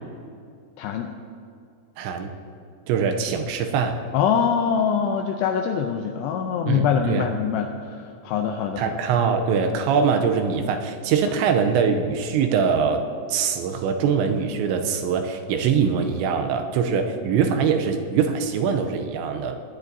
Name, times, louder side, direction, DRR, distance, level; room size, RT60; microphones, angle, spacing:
voice 1, 0.8-1.1 4.1-9.0, left 7 dB, 85° left, 4 dB, 2.4 m, -24 dB
voice 2, 2.0-2.3 2.9-4.0 6.7-7.3 8.8-13.0 13.3-19.6, right 6 dB, 80° right, 5 dB, 2.9 m, -23 dB
18.5 x 10.5 x 2.7 m, 2.4 s
omnidirectional pair, 5.4 m